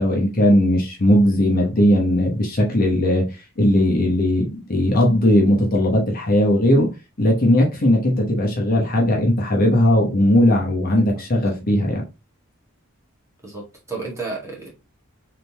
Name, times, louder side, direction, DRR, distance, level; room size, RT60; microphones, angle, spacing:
voice 1, 0.0-3.2 3.6-6.9 7.2-12.0, left 1 dB, 40° left, 1.1 m, -18 dB
voice 2, 10.9-11.5 13.4-14.7, right 3 dB, 15° right, 1.7 m, -33 dB
3.7 x 3.5 x 3.0 m
head